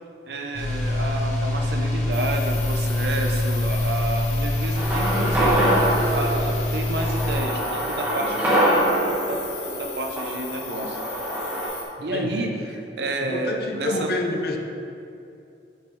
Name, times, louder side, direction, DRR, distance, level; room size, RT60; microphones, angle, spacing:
voice 1, 0.3-11.0 12.0-14.1, right 2 dB, 65° right, 3 dB, 0.7 m, -30 dB
sound 1, 0.5-7.4, left 1 dB, 40° left, 1.1 m, -25 dB
sound 2, 2.1-11.8, left 6 dB, 75° left, 1.0 m, -38 dB
sound 3, 4.8-11.7, right 1 dB, 10° right, 1.2 m, -24 dB
voice 2, 12.1-12.5 13.2-14.6, left 1 dB, 55° left, 3 dB, 0.6 m, -28 dB
6.5 x 6.0 x 3.3 m, 2.6 s
head